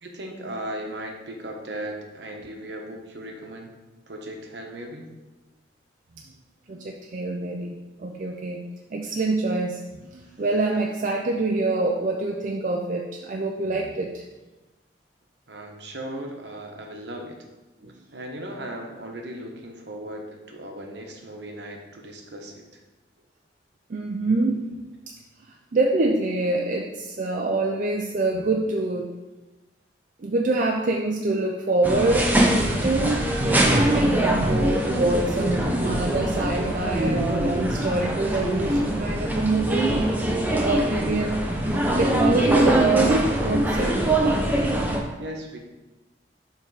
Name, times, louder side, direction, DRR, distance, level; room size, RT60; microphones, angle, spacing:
voice 1, 0.0-3.7 4.1-5.1 15.5-17.3 18.1-22.6 45.2-45.6, right 1 dB, 70° right, 2 dB, 1.0 m, -37 dB
voice 2, 6.7-8.6 8.9-14.2 17.8-18.0 23.9-24.7 25.1-25.2 25.7-29.1 30.2-32.5 32.8-40.1 40.6-44.0, right 2 dB, 45° right, 1 dB, 0.5 m, -26 dB
sound 1, 31.8-45.0, right 1 dB, 10° right, 0.7 m, -23 dB
7.0 x 3.3 x 4.8 m, 1.1 s
head